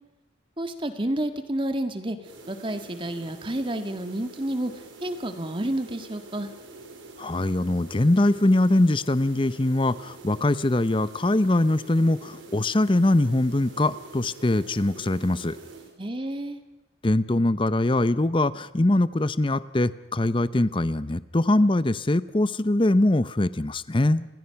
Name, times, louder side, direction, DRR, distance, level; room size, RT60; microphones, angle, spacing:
voice 1, 0.6-2.2 2.5-4.7 5.0-6.5 16.0-16.6, right 1 dB, 25° right, 8 dB, 1.7 m, -30 dB
sound 1, 2.2-15.9, right 3 dB, 80° right, 4.3 m, -46 dB
voice 2, 7.2-15.6 17.0-24.3, left 1 dB, 25° left, 15 dB, 0.7 m, -22 dB
29.0 x 21.5 x 5.8 m, 1.0 s
head